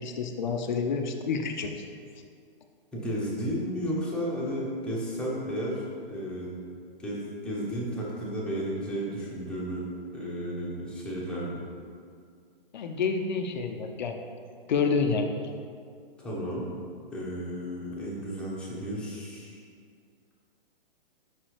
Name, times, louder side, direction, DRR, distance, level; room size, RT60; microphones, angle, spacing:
voice 1, 0.0-1.8 12.7-14.2 14.7-15.3, left 5 dB, 50° left, 5 dB, 0.6 m, -28 dB
voice 2, 2.9-6.5 7.0-9.8 10.1-11.6 16.2-16.7 17.1-19.6, equal, 5° left, -6 dB, 1.0 m, -33 dB
6.0 x 5.5 x 3.2 m, 2.2 s
figure-of-eight pair, 120°, 29 cm